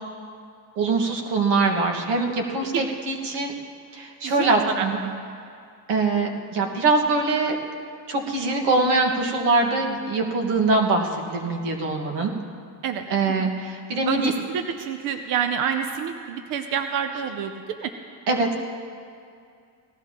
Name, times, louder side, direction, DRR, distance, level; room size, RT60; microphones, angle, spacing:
voice 1, 0.8-3.5 3.9-5.0 5.9-7.6 8.1-12.3 13.1-14.3 18.3-18.6, right 3 dB, 90° right, 1 dB, 1.8 m, -23 dB
voice 2, 4.2-5.2 12.8-13.0 13.4-13.5 14.1-17.9, right 8 dB, 55° right, 7 dB, 0.7 m, -28 dB
18.5 x 14.5 x 3.0 m, 2.3 s
cardioid pair, 160°, 40 cm